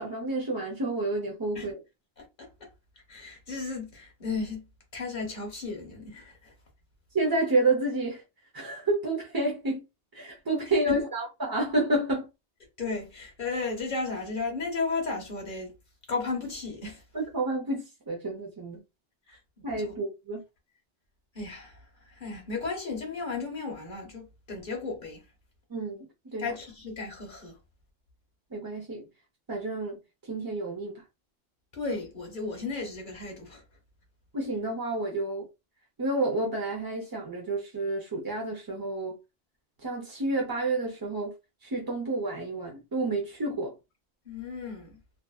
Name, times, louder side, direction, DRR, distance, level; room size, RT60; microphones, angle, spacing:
voice 1, 0.0-1.8 7.1-8.2 8.5-9.8 10.1-12.3 17.1-18.8 19.6-20.4 25.7-26.5 28.5-29.0 29.5-30.0 30.3-31.0 34.3-35.4 36.0-39.2 39.8-41.3 41.6-43.7, right 2 dB, 30° right, 0.4 m, -29 dB
voice 2, 2.2-2.5 3.1-6.5 10.9-11.0 12.8-15.7 16.1-17.0 19.3-19.4 21.3-21.8 22.1-25.2 26.4-27.6 31.7-33.6 44.3-45.0, left 4 dB, 50° left, 0.9 m, -34 dB
2.5 x 2.4 x 2.3 m
omnidirectional pair, 1.2 m